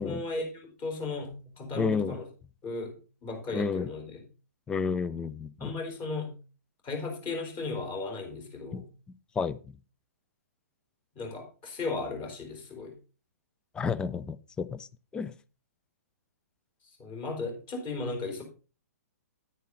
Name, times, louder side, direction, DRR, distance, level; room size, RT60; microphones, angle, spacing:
voice 1, 0.0-2.2 2.6-4.2 5.6-6.4 6.8-8.9 11.1-12.9 17.0-18.4, left 3 dB, 25° left, 2 dB, 4.1 m, -36 dB
voice 2, 1.8-2.2 3.5-3.9 4.7-5.7 8.7-8.8 9.4-9.6 13.7-14.9 15.1-15.3, left 5 dB, 10° left, 15 dB, 0.5 m, -31 dB
10.0 x 9.4 x 3.8 m, 0.34 s
figure-of-eight pair, 120°, 9 cm